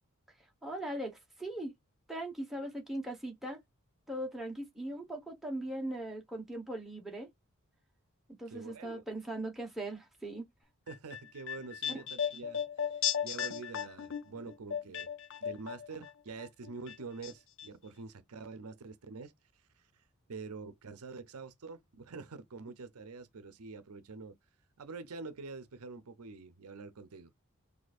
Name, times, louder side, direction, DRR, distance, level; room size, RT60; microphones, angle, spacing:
voice 1, 0.6-1.7 2.1-3.6 4.1-7.3 8.3-10.5 12.3-12.4, right 1 dB, ahead, 1.2 m, -39 dB
voice 2, 8.5-9.0 10.9-12.6 13.2-15.1 15.4-19.3 19.8-24.4 24.8-27.3, right 4 dB, 85° right, 0.6 m, -46 dB
sound 1, 10.9-16.1 16.4-17.3 17.6-17.7, left 9 dB, 60° left, 0.5 m, -36 dB
4.1 x 2.7 x 2.5 m
head